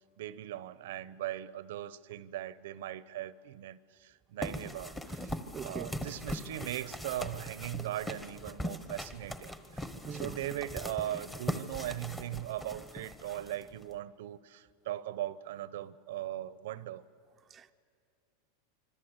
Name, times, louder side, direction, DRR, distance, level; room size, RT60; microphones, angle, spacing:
voice 1, 0.2-5.3 5.6-17.0, right 13 dB, 70° right, 0.7 m, -39 dB
sound 1, 4.4-13.9, equal, 5° left, 1.1 m, -40 dB
voice 2, 5.5-6.1 10.0-10.4 17.5-17.7, right 6 dB, 20° right, 0.6 m, -42 dB
25.5 x 24.5 x 8.1 m
supercardioid pair, 155°, 0 cm